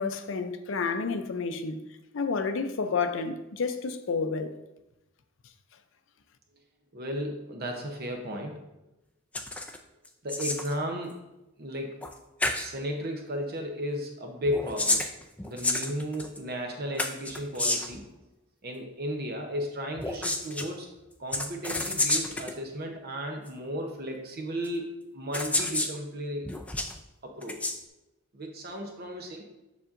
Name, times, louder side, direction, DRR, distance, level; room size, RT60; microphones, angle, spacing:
voice 1, 0.0-1.8 2.1-4.5, left 4 dB, 60° left, 0.5 m, -30 dB
voice 2, 6.9-8.6 10.2-11.1 11.6-12.0 12.6-15.1 15.4-18.1 18.6-20.9 21.2-24.9 25.1-26.5 27.2-27.6 28.3-29.4, equal, 45° right, 0.7 m, -34 dB
sound 1, 9.3-9.8 10.1-10.8 12.0-12.1 12.4-12.7 14.5-16.4 17.0-18.0 20.0-20.7 21.3-22.5 23.5-23.6 24.6-24.7 25.3-26.0 26.5-26.9 27.4-27.8, left 2 dB, 5° left, 0.3 m, -29 dB
7.1 x 6.8 x 2.5 m
head